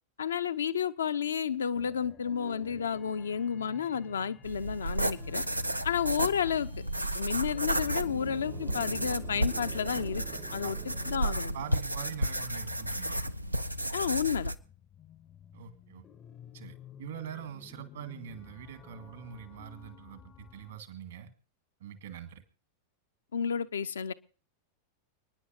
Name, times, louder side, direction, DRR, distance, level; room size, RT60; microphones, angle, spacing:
voice 1, 0.2-5.4 5.8-6.7 7.1-10.2 10.5-10.8 11.1-11.5 13.9-14.5 23.3-24.1, left 7 dB, 70° left, 0.6 m, -31 dB
sound 1, 1.7-20.8, left 9 dB, 25° left, 0.6 m, -53 dB
sound 2, 4.4-14.6, right 1 dB, 85° right, 0.5 m, -33 dB
sound 3, 7.2-12.1, right 11 dB, 35° right, 0.8 m, -47 dB
voice 2, 11.2-13.2 15.5-16.0 16.5-21.3 21.8-22.4, right 9 dB, 60° right, 1.8 m, -44 dB
29.5 x 10.0 x 2.9 m
figure-of-eight pair, 90°, 0 cm